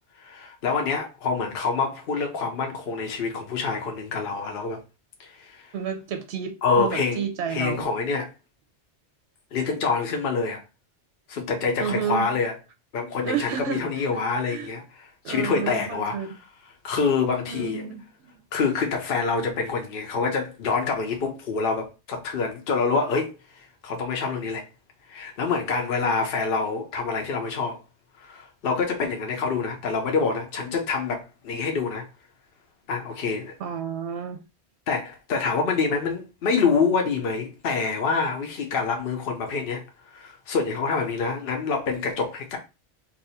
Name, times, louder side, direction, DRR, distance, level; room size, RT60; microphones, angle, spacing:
voice 1, 0.1-4.8 5.2-5.7 6.6-8.3 9.5-10.6 11.3-12.5 12.9-16.3 16.8-17.8 18.5-24.6 25.1-27.8 28.2-32.1 32.9-33.5 34.9-39.8 40.1-42.6, left 4 dB, 60° left, 0.8 m, -26 dB
voice 2, 5.7-7.9 11.8-12.2 13.2-14.1 14.4-14.7 15.2-16.3 17.5-18.3 33.6-34.4, right 8 dB, 70° right, 0.8 m, -31 dB
2.7 x 2.4 x 4.0 m
omnidirectional pair, 1.2 m